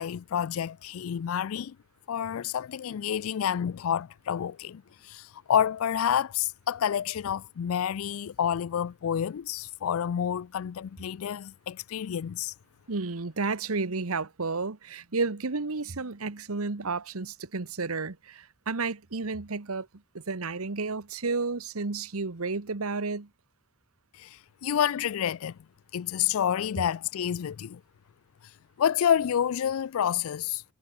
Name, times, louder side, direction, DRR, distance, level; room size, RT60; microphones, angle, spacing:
voice 1, 0.0-1.7 2.1-12.5 24.1-25.5 25.9-27.8 28.8-30.6, left 9 dB, 75° left, 0.4 m, -29 dB
voice 2, 12.9-19.9 20.1-23.3, right 4 dB, 85° right, 1.2 m, -32 dB
head